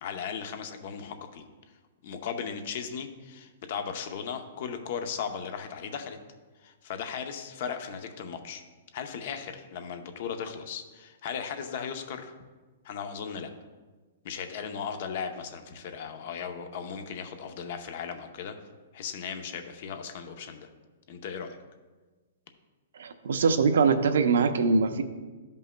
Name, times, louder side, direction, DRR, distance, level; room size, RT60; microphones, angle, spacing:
voice 1, 0.0-1.5 2.0-6.2 6.6-8.6 8.9-12.3 12.8-13.5 14.2-18.6 18.9-20.7 21.1-21.6, left 7 dB, 50° left, 7 dB, 0.7 m, -37 dB
voice 2, 23.0-25.0, right 5 dB, 80° right, 8 dB, 0.6 m, -23 dB
13.0 x 5.3 x 2.2 m, 1.3 s
hypercardioid pair, 160°, 0 cm